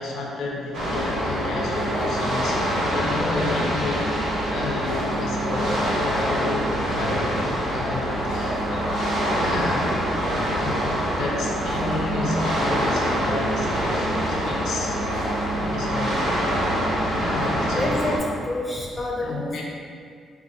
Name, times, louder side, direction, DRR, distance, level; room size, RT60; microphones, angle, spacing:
voice 1, 0.0-4.0 4.5-8.9 9.3-9.9 10.5-14.9 15.6-16.2 16.9-18.1 19.2-19.6, left 3 dB, 70° left, -1 dB, 0.5 m, -31 dB
sound 1, 0.7-18.2, equal, 85° right, 0.7 m, -25 dB
voice 2, 17.8-19.6, left 1 dB, 10° left, -3 dB, 0.6 m, -28 dB
3.7 x 2.5 x 2.9 m, 2.2 s
cardioid pair, 90°, 0 cm